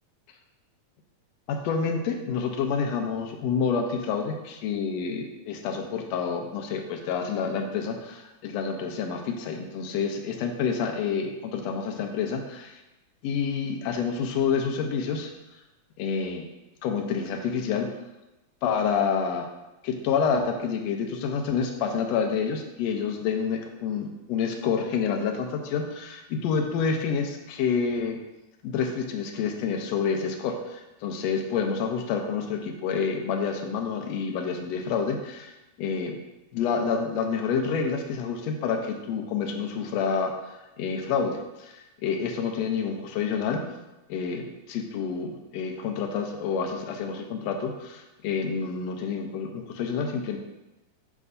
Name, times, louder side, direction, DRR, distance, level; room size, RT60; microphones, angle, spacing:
voice 1, 1.5-12.8 13.2-15.3 16.0-16.5 16.8-17.9 18.6-19.5 19.8-28.2 28.6-35.5 35.8-36.2 36.5-40.3 40.8-43.6 44.1-50.4, left 6 dB, 70° left, 3 dB, 1.8 m, -28 dB
8.3 x 6.0 x 2.7 m, 1.0 s
omnidirectional pair, 3.5 m